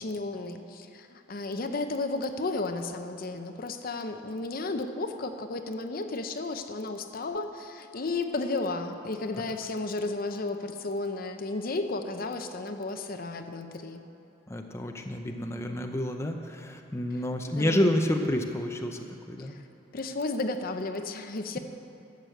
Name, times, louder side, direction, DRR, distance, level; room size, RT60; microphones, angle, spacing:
voice 1, 0.0-14.0 17.1-17.8 19.4-19.7 19.9-21.6, left 3 dB, 50° left, 7 dB, 0.7 m, -33 dB
voice 2, 14.5-19.5, left 1 dB, 15° left, 3 dB, 0.6 m, -29 dB
12.5 x 6.9 x 7.8 m, 2.9 s
head